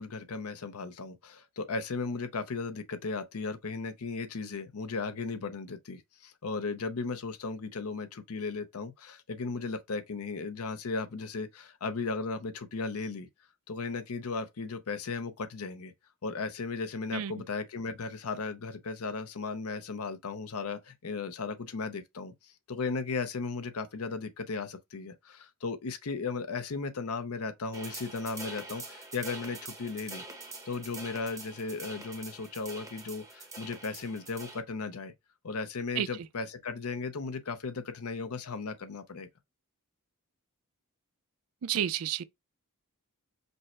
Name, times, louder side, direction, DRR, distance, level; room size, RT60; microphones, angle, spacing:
voice 1, 0.0-13.3 13.7-15.9 16.2-30.2 30.7-35.1 35.4-39.3, left 4 dB, 80° left, 0.7 m, -36 dB
sound 1, 27.7-34.6, right 3 dB, 15° right, 1.0 m, -45 dB
voice 2, 41.6-42.2, right 9 dB, 70° right, 0.4 m, -30 dB
5.3 x 2.1 x 4.3 m
head